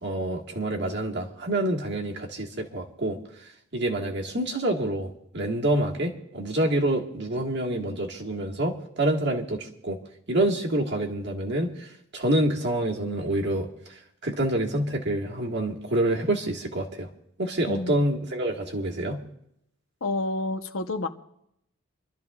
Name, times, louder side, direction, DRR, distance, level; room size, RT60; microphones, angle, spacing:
voice 1, 0.0-10.0 10.3-14.0 14.2-17.1 17.4-19.2, right 1 dB, 55° right, 0 dB, 1.7 m, -27 dB
voice 2, 17.7-18.1 20.0-21.1, left 2 dB, 75° left, 7 dB, 0.9 m, -29 dB
29.0 x 12.5 x 2.4 m, 0.77 s
head